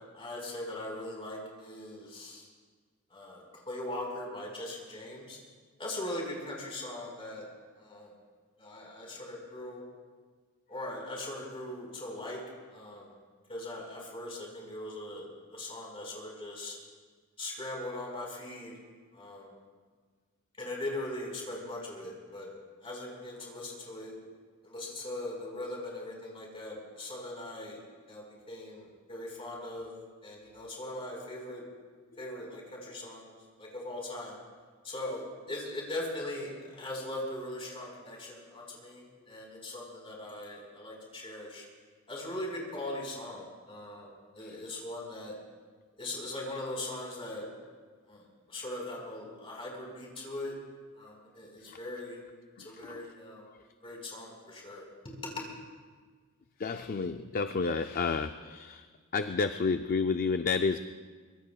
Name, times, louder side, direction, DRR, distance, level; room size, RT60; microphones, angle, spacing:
voice 1, 0.1-2.5 3.1-5.4 5.8-7.5 7.8-8.1 8.6-9.8 10.7-12.4 12.7-13.1 13.5-16.8 17.4-18.7 19.1-19.5 20.6-22.5 22.8-24.1 24.6-27.8 28.1-29.9 30.2-31.6 32.2-34.4 34.8-35.2 35.5-41.6 42.1-45.4 46.0-47.5 48.1-50.5 50.9-52.2 52.6-53.5 53.8-55.4, left 1 dB, 25° left, -2 dB, 4.5 m, -40 dB
voice 2, 52.6-53.1 53.5-53.6 56.6-58.9 59.1-60.8, left 4 dB, 40° left, 9 dB, 0.4 m, -31 dB
24.0 x 22.0 x 2.3 m, 1.5 s
head